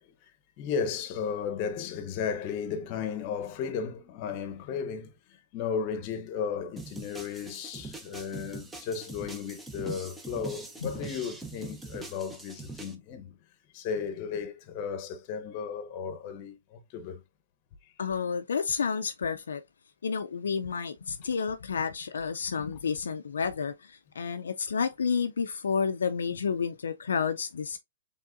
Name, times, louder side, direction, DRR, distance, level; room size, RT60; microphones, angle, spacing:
voice 1, 0.0-13.4 13.7-17.2 17.8-17.9, left 6 dB, 40° left, 0.8 m, -35 dB
sound 1, 6.8-12.9, right 3 dB, 10° right, 0.6 m, -43 dB
voice 2, 18.0-19.6 20.0-27.8, left 6 dB, 80° left, 0.4 m, -30 dB
4.6 x 3.4 x 2.5 m
hypercardioid pair, 135°, 0 cm